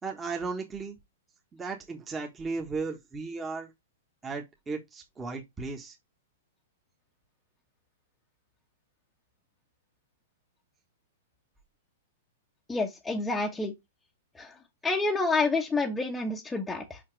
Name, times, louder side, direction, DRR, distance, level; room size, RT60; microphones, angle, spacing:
voice 1, 0.0-1.0 1.5-3.7 4.2-5.9, right 4 dB, 15° right, 1.5 m, -35 dB
voice 2, 12.7-13.7 14.4-14.5 14.8-17.0, left 3 dB, 10° left, 1.1 m, -28 dB
5.8 x 5.7 x 3.3 m
hypercardioid pair, 135°, 0 cm